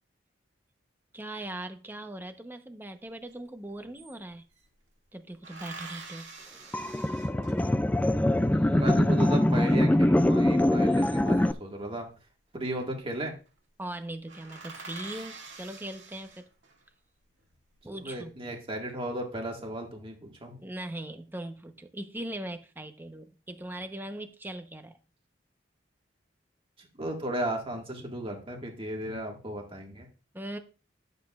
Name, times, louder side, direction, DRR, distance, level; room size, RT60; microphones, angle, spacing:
voice 1, 1.1-4.4 5.1-6.3 13.8-16.5 17.8-18.3 20.6-25.0 30.3-30.6, right 1 dB, 10° right, 0.9 m, -40 dB
sound 1, 3.3-3.4 3.6-4.7 5.4-8.0 10.6-11.6 12.8-13.1 13.5-13.6 13.9-14.0 14.3-16.8 17.4-18.1, right 4 dB, 70° right, 2.1 m, -46 dB
sound 2, 6.7-11.5, left 1 dB, 10° left, 0.3 m, -23 dB
voice 2, 8.4-12.1 12.5-13.3 17.9-20.6 26.8-30.1, right 1 dB, 30° right, 1.8 m, -35 dB
12.0 x 8.1 x 2.4 m
head